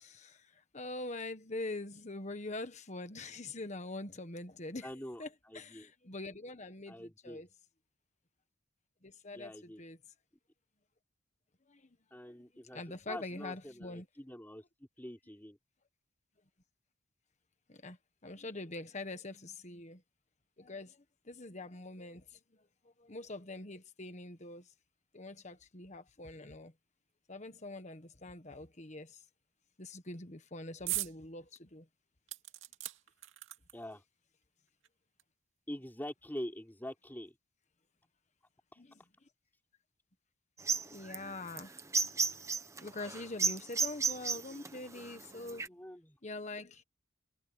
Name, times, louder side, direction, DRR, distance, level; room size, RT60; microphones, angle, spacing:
voice 1, 0.0-4.9 5.2-7.5 9.0-10.0 11.7-12.0 12.2-12.3 12.7-14.0 17.7-18.0 18.2-20.0 20.6-22.4 22.8-24.7 25.1-26.7 27.3-29.2 29.8-31.9 38.8-39.0 40.6-41.7 42.8-45.7 46.2-46.8, left 2 dB, 35° left, 1.4 m, -44 dB
voice 2, 4.8-5.9 6.9-7.4 9.3-9.8 12.1-12.8 13.1-14.6 15.0-15.6 33.7-34.0 35.7-37.4 38.7-38.8 45.0-45.1 45.3-46.2, equal, 10° left, 3.7 m, -45 dB
sound 1, 30.9-31.2 31.6-31.7 32.3-33.9 34.8-34.9 35.2-35.3, right 15 dB, 75° right, 2.3 m, -39 dB
sound 2, 40.6-45.7, right 4 dB, 15° right, 1.1 m, -33 dB
head